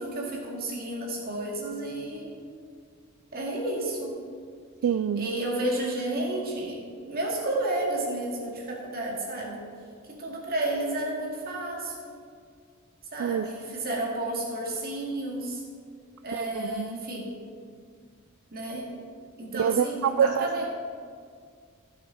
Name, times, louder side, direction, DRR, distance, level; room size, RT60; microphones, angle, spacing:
voice 1, 0.0-2.3 3.3-4.2 5.2-9.6 10.1-12.1 13.1-15.6 16.2-17.3 18.5-18.9 19.4-20.7, right 1 dB, 45° right, -2 dB, 2.2 m, -31 dB
voice 2, 4.8-5.3 13.2-13.5 16.3-17.1 19.5-20.6, right 8 dB, 75° right, 10 dB, 0.3 m, -26 dB
14.5 x 6.5 x 4.4 m, 2.1 s
head